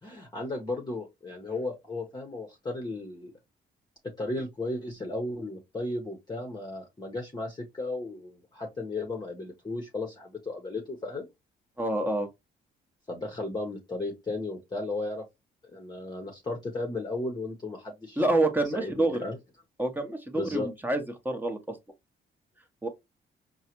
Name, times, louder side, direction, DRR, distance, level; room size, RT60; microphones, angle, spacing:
voice 1, 0.0-3.3 4.2-11.3 13.1-15.2 15.7-18.4 18.7-19.4 20.3-20.7, left 2 dB, 20° left, 0.9 m, -35 dB
voice 2, 11.8-12.3 18.2-19.2 19.8-21.8 22.8-22.9, right 2 dB, 10° right, 0.9 m, -27 dB
4.7 x 2.2 x 2.9 m
cardioid pair, 90°, 20 cm